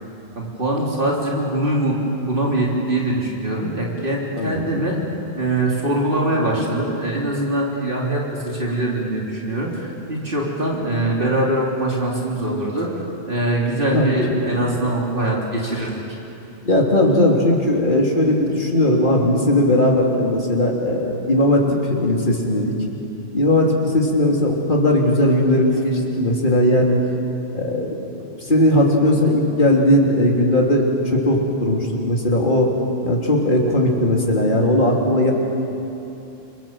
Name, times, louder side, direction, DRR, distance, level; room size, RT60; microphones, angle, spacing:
voice 1, 0.4-5.0 5.3-13.0 13.3-15.9, right 1 dB, 50° right, -3 dB, 3.6 m, -22 dB
voice 2, 16.6-22.7 23.3-27.0 27.5-28.0 28.4-32.7 33.0-35.3, left 1 dB, 45° left, -1 dB, 3.5 m, -18 dB
28.5 x 24.0 x 7.5 m, 3.0 s
omnidirectional pair, 1.1 m